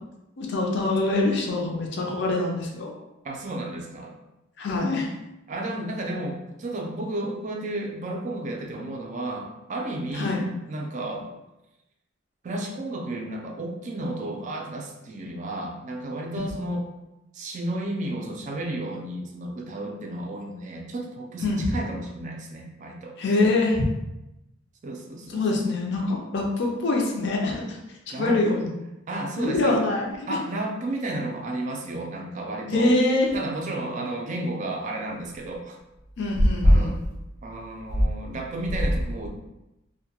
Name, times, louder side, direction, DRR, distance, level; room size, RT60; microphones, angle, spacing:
voice 1, 0.4-2.9 4.6-5.1 10.1-10.4 16.4-16.5 21.4-21.6 23.2-23.8 25.3-27.8 28.2-28.7 29.4-30.4 32.7-33.3 36.2-36.9, left 2 dB, 55° left, 0 dB, 0.5 m, -23 dB
voice 2, 3.2-4.2 5.5-11.3 12.4-16.9 17.3-23.2 24.8-25.4 28.1-28.4 29.1-29.8 30.3-32.9 33.3-35.8 36.6-37.0 37.4-39.3, right 1 dB, 35° right, 1 dB, 0.3 m, -32 dB
2.2 x 2.1 x 2.8 m, 0.94 s
head